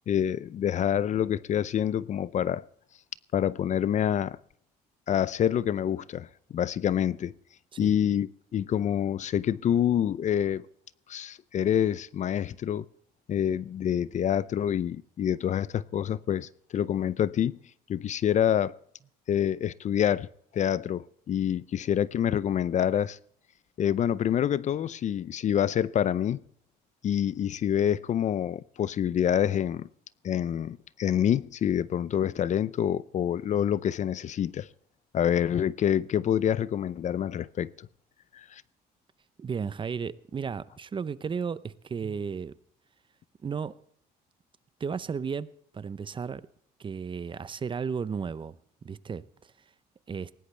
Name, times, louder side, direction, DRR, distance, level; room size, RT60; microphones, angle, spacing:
voice 1, 0.1-2.7 3.3-4.4 5.1-7.3 7.8-10.7 11.1-12.9 13.3-17.6 17.9-18.8 19.3-20.3 20.5-23.2 23.8-26.4 27.0-29.9 30.2-34.7 35.1-37.9 38.3-38.6, left 9 dB, 45° left, 0.5 m, -27 dB
voice 2, 39.4-42.5 43.4-43.8 44.8-46.5 46.8-48.6 48.8-49.2 50.1-50.3, right 6 dB, 30° right, 0.7 m, -34 dB
19.5 x 17.0 x 3.4 m
cardioid pair, 110°, 17 cm